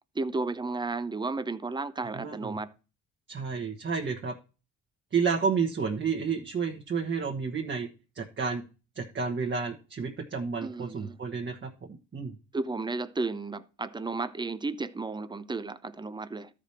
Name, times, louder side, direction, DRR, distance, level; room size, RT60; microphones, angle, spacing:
voice 1, 0.2-2.7 10.6-11.2 12.5-16.5, right 3 dB, 15° right, 0.7 m, -33 dB
voice 2, 2.1-2.6 3.3-4.3 5.1-7.9 8.1-8.6 8.9-11.7 12.1-12.4, right 5 dB, 40° right, 1.3 m, -30 dB
13.0 x 5.1 x 4.3 m
cardioid pair, 90°, 30 cm